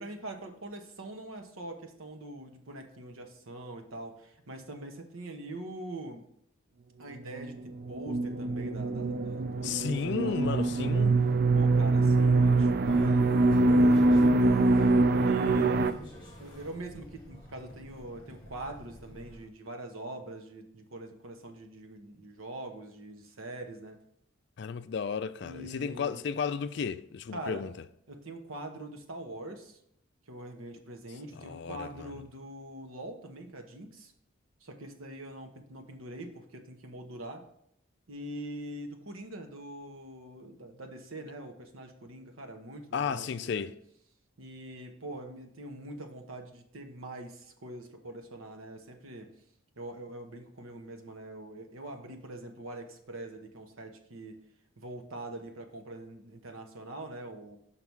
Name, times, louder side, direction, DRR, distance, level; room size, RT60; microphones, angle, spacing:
voice 1, 0.0-6.3 7.0-7.6 7.9-11.1 11.5-16.1 16.4-24.0 25.4-26.2 27.3-27.7 28.1-29.8 30.3-34.1 34.6-37.4 38.1-43.7 44.4-49.3 49.8-54.4 54.8-57.6, right 1 dB, 90° right, 1.0 m, -43 dB
sound 1, 7.4-15.9, right 2 dB, 50° right, 0.3 m, -24 dB
voice 2, 9.6-11.2 24.6-27.7 31.4-32.1 42.9-43.7, left 6 dB, 55° left, 0.3 m, -33 dB
sound 2, 12.8-19.5, equal, 20° left, 1.4 m, -49 dB
5.8 x 4.6 x 5.5 m
head